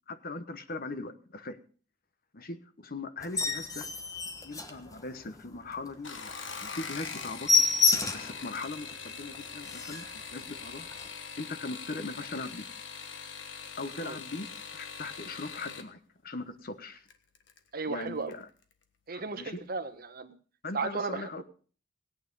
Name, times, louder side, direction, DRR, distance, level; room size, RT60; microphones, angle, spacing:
voice 1, 0.1-1.6 2.3-3.9 4.4-6.3 6.6-7.7 8.1-10.9 11.4-12.7 13.8-14.5 14.7-17.1 17.9-18.5 19.1-19.6 20.6-21.4, left 3 dB, 50° left, 11 dB, 1.1 m, -40 dB
sound 1, 3.2-5.4 5.8-5.9 6.3-6.4 6.7-6.8 7.1-8.4 8.9-9.0 9.3-9.4 9.6-10.2 10.9-11.1, left 4 dB, 20° left, 1.1 m, -28 dB
sound 2, 5.9-15.9 17.1-17.6 18.0-18.4 18.7-18.8, left 6 dB, 80° left, 1.4 m, -42 dB
voice 2, 17.7-18.3 19.1-20.3 20.7-21.4, right 4 dB, 50° right, 8 dB, 1.3 m, -35 dB
17.0 x 9.0 x 5.4 m, 0.41 s
head